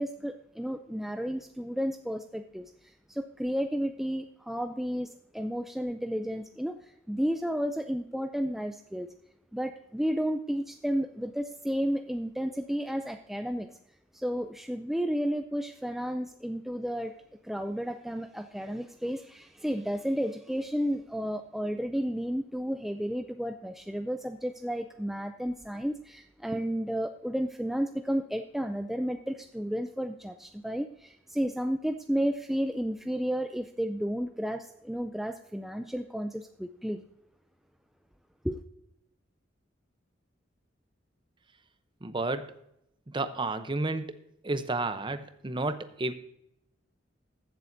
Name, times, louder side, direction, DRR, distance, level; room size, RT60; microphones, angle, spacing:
voice 1, 0.0-9.1 9.5-13.7 14.1-17.1 17.4-37.0 38.4-38.6, equal, ahead, 7 dB, 0.3 m, -32 dB
voice 2, 42.0-42.5 43.1-44.2 44.4-46.1, right 2 dB, 25° right, 11 dB, 0.7 m, -31 dB
15.5 x 7.5 x 2.6 m, 0.78 s
head